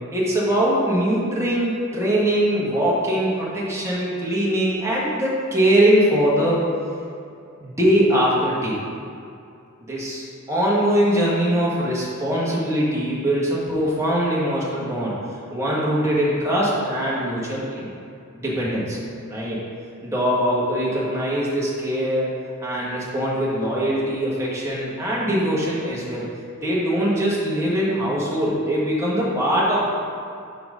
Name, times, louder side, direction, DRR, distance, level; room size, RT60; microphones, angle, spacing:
voice 1, 0.1-6.6 7.6-8.8 9.8-15.2 15.5-17.9 18.3-19.0 19.3-19.6 20.0-22.3 22.6-26.2 26.6-29.9, equal, 15° right, -6 dB, 1.5 m, -22 dB
5.9 x 5.1 x 5.5 m, 2.5 s
head